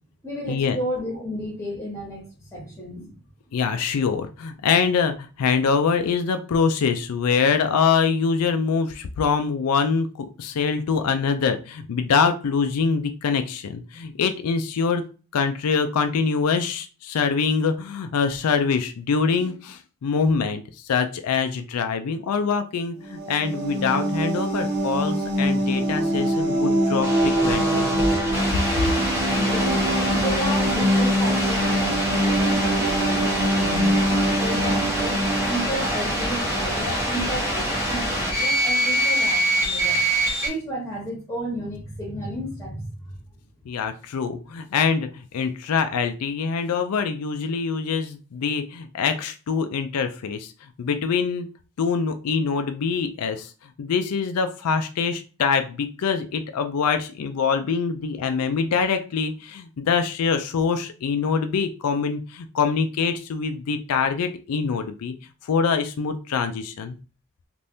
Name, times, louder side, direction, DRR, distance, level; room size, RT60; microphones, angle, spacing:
voice 1, 0.2-3.1 29.3-29.8 30.1-34.0 34.4-40.0 40.4-42.9, equal, 10° left, -2 dB, 1.3 m, -32 dB
voice 2, 3.5-15.0 15.3-27.9 43.7-50.5 50.8-51.5 51.8-53.5 53.8-65.1 65.4-67.0, left 5 dB, 85° left, 7 dB, 0.4 m, -24 dB
sound 1, 23.0-36.6, equal, 70° right, 1.1 m, -24 dB
sound 2, 27.0-40.5, right 1 dB, 10° right, 1.1 m, -25 dB
3.3 x 2.5 x 2.7 m, 0.35 s
head